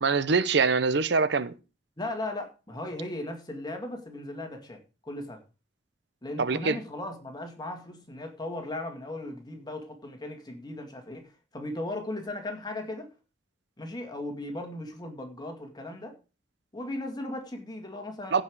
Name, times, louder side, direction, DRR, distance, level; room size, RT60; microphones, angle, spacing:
voice 1, 0.0-1.5 6.4-6.8 18.3-18.4, right 4 dB, 65° right, 0.7 m, -24 dB
voice 2, 2.0-5.4 6.2-13.1 13.8-16.2 16.7-18.4, left 1 dB, 25° left, 2.0 m, -37 dB
15.5 x 5.3 x 4.7 m
head